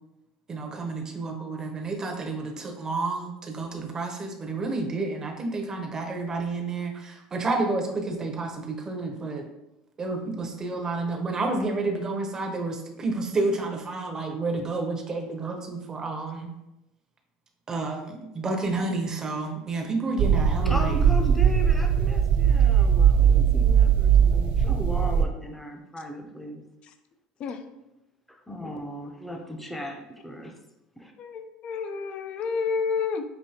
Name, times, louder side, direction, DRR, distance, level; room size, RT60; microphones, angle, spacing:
voice 1, 0.5-9.4 10.0-16.5 17.7-21.0, right 3 dB, 25° right, 2 dB, 0.8 m, -30 dB
sound 1, 20.2-25.2, right 8 dB, 60° right, 0.3 m, -20 dB
voice 2, 20.6-26.6 28.3-30.5 31.0-31.1, equal, 5° left, 3 dB, 0.7 m, -36 dB
voice 3, 31.2-33.2, left 5 dB, 50° left, 7 dB, 0.5 m, -29 dB
5.1 x 2.7 x 2.9 m, 0.91 s
supercardioid pair, 110°, 2 cm